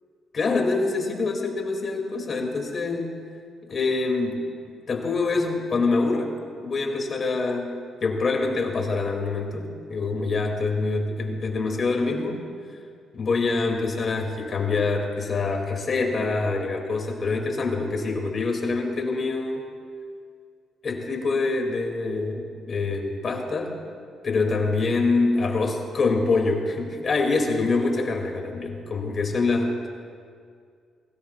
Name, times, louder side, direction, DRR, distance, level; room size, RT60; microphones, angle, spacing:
voice 1, 0.3-3.2 3.7-4.5 4.9-12.4 13.1-19.6 20.8-23.8 24.2-29.9, left 3 dB, 45° left, 2 dB, 2.5 m, -25 dB
21.5 x 17.0 x 2.4 m, 2.2 s
cardioid pair, 90°, 0 cm